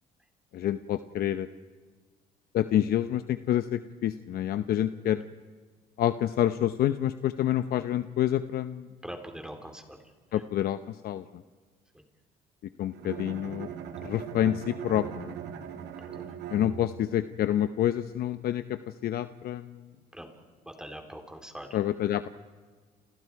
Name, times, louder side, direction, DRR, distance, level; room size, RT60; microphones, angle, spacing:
voice 1, 0.5-1.5 2.5-5.2 6.0-8.9 10.3-11.4 12.8-13.7 14.0-15.3 16.5-19.8 21.7-22.3, left 11 dB, 65° left, 10 dB, 0.9 m, -28 dB
voice 2, 9.0-10.0 10.3-10.4 16.0-16.2 20.1-20.3 20.7-21.7, equal, 5° right, 3 dB, 3.8 m, -42 dB
Bowed string instrument, 12.9-17.2, right 8 dB, 75° right, 2.8 m, -40 dB
29.5 x 29.5 x 4.8 m, 1.5 s
cardioid pair, 110°, 17 cm